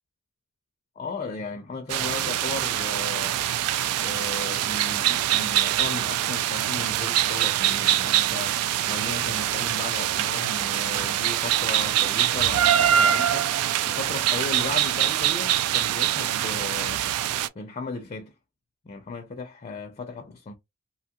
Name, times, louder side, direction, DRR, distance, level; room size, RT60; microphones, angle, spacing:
voice 1, 1.0-3.4 4.0-8.5 8.9-13.6 13.8-17.0 17.6-18.3 18.9-20.6, left 3 dB, 30° left, 0.4 m, -36 dB
sound 1, 1.9-17.5, right 11 dB, 85° right, 0.3 m, -24 dB
2.8 x 2.3 x 2.8 m
head